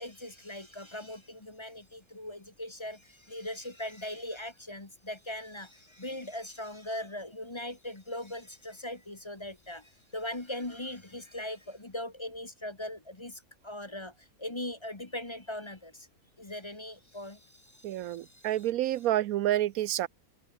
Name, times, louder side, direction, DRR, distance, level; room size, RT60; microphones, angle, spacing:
voice 1, 0.0-16.1 16.4-18.5, left 1 dB, 20° left, 1.4 m, -40 dB
voice 2, 17.8-20.1, right 13 dB, 75° right, 1.0 m, -29 dB
omnidirectional pair, 1.5 m